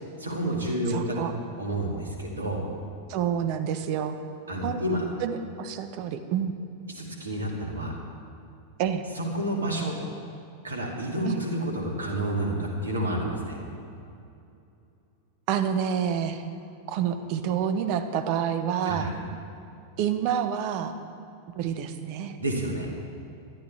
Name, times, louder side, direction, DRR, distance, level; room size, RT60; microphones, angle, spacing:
voice 1, 0.2-1.2 1.6-2.6 4.5-5.1 7.0-8.0 9.2-10.0 10.6-13.6 18.9-19.1 22.4-22.9, right 1 dB, 75° right, 0 dB, 2.5 m, -29 dB
voice 2, 0.9-1.3 3.1-4.1 4.6-4.8 5.2-6.5 8.8-9.0 11.2-11.4 15.5-16.5 16.9-19.1 20.0-20.9 21.5-22.4, right 8 dB, 45° right, 9 dB, 1.0 m, -28 dB
20.5 x 12.5 x 3.4 m, 2.6 s
figure-of-eight pair, 90°, 0 cm